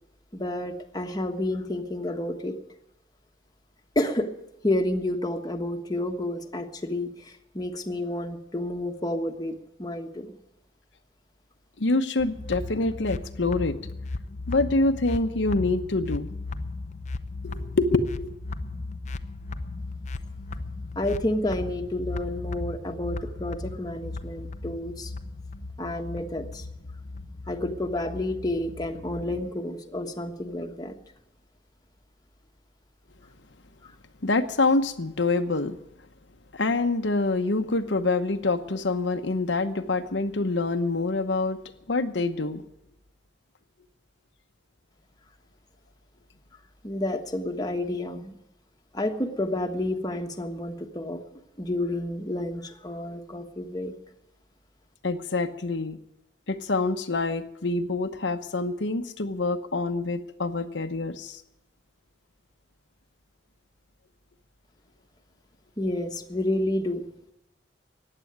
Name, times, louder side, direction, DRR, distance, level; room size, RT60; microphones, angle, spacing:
voice 1, 0.3-2.6 3.9-4.3 4.6-10.3 20.9-25.1 25.8-26.6 27.5-30.9 33.8-33.9 46.8-48.4 48.9-51.2 51.6-53.9 65.8-67.1, left 1 dB, 20° left, 4 dB, 1.4 m, -30 dB
voice 2, 11.8-13.8 14.5-16.3 17.4-18.3 34.2-35.8 36.5-41.6 41.9-42.6 55.0-56.0 56.5-61.4, left 3 dB, 75° left, 7 dB, 1.0 m, -26 dB
sound 1, 12.2-29.4, left 2 dB, 40° left, 0.8 m, -36 dB
15.5 x 10.0 x 9.3 m, 0.87 s
head